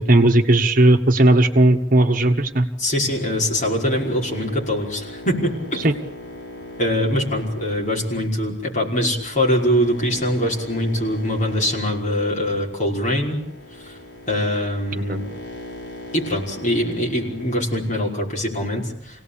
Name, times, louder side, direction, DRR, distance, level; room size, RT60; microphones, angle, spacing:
voice 1, 0.0-2.7 5.8-5.9 14.9-15.2, right 1 dB, 45° right, 5 dB, 1.4 m, -16 dB
voice 2, 2.8-5.8 6.8-13.4 14.3-15.2 16.1-19.2, equal, 40° left, -2 dB, 5.5 m, -23 dB
sound 1, 3.0-18.2, left 1 dB, 65° left, 5.5 m, -40 dB
27.0 x 18.0 x 8.7 m, 0.73 s
head